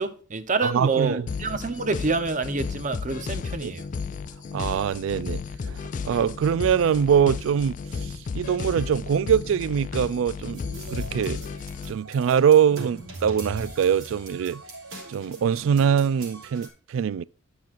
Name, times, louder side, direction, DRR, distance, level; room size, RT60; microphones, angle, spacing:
voice 1, 0.0-3.9, right 4 dB, 40° right, 0.8 m, -27 dB
voice 2, 0.6-1.3 3.6-3.7 4.5-8.1 8.3-10.6 10.9-11.4 11.9-14.6 15.1-17.2, right 8 dB, 70° right, 0.3 m, -23 dB
sound 1, 1.3-11.9, left 5 dB, 40° left, 0.3 m, -34 dB
sound 2, 10.5-16.7, right 2 dB, 85° right, 3.5 m, -41 dB
11.5 x 5.9 x 2.5 m
head